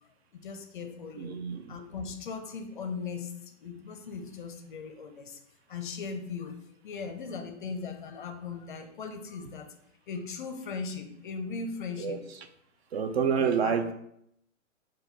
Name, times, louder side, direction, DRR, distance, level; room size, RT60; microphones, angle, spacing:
voice 1, 0.3-5.4 5.7-6.6 6.8-9.7 10.1-12.2 13.4-13.8, left 5 dB, 40° left, 6 dB, 0.5 m, -38 dB
voice 2, 1.2-1.8 12.0-12.2 12.9-13.9, right 7 dB, 55° right, 8 dB, 0.5 m, -28 dB
4.1 x 2.6 x 3.9 m, 0.74 s
hypercardioid pair, 145°, 39 cm